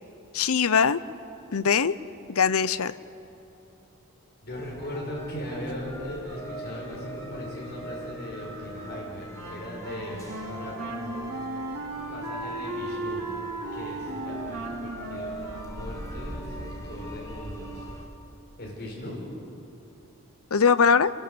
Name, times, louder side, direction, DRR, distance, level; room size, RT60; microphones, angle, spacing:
voice 1, 0.3-1.0 1.5-1.9 2.3-2.9 20.5-21.1, left 6 dB, 75° left, 15 dB, 0.7 m, -21 dB
voice 2, 4.4-11.6 12.1-13.3 13.7-17.9 18.6-19.2, left 1 dB, 45° left, -3 dB, 5.2 m, -39 dB
sound 1, 4.5-18.1, right 1 dB, 15° left, 2.7 m, -41 dB
Wind instrument woodwind instrument, 9.3-16.7, right 2 dB, 75° right, 3.4 m, -36 dB
28.0 x 22.0 x 8.0 m, 2.9 s
head